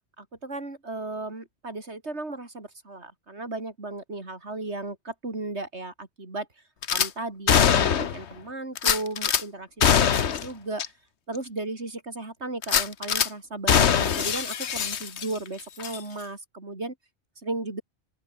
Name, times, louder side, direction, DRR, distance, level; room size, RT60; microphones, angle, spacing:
voice 1, 0.2-6.5 6.9-10.8 11.3-16.9 17.4-17.8, right 2 dB, 85° right, 4.4 m, -35 dB
Gunshot gunfire / Glass, 6.8-7.1 7.5-8.2 8.8-9.4 9.8-10.5 10.8-10.9 11.3-11.4 12.6-13.3 13.7-15.5 15.8-16.0, left 8 dB, 85° left, 1.3 m, -22 dB
open air
omnidirectional pair, 1.1 m